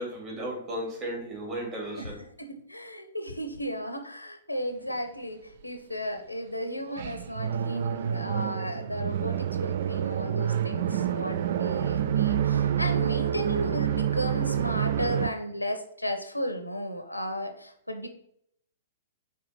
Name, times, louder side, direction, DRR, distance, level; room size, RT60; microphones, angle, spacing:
voice 1, 0.0-2.2, right 1 dB, 25° right, -3 dB, 2.7 m, -35 dB
voice 2, 2.0-18.1, equal, 85° left, 8 dB, 0.8 m, -34 dB
sound 1, 6.9-15.3, right 9 dB, 50° right, 0.4 m, -28 dB
4.8 x 4.1 x 5.6 m, 0.72 s
figure-of-eight pair, 110°, 0 cm